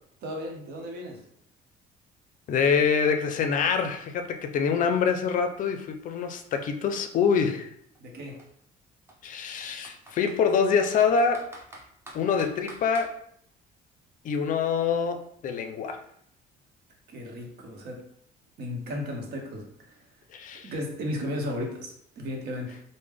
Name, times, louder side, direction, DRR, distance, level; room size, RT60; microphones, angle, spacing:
voice 1, 0.2-1.2 8.0-8.4 17.1-18.0 18.6-20.1 20.6-22.8, left 1 dB, 70° right, 2 dB, 0.8 m, -35 dB
voice 2, 2.5-7.7 9.2-11.5 12.1-13.1 14.2-16.0 20.3-20.7, left 6 dB, 50° left, 6 dB, 0.4 m, -25 dB
Computer keyboard, 4.8-4.9 5.2-7.2 7.9-8.1 8.4-8.5 9.1-10.4 10.8-13.1, right 1 dB, 15° right, 0.7 m, -47 dB
3.4 x 2.1 x 3.4 m, 0.68 s
cardioid pair, 110°, 17 cm